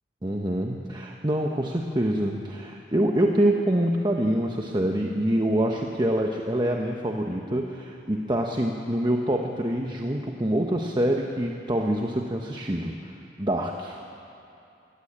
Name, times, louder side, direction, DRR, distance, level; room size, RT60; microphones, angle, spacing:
voice 1, 0.2-13.0 13.4-14.0, right 1 dB, 25° right, 1 dB, 1.0 m, -25 dB
23.0 x 15.5 x 8.8 m, 2.7 s
head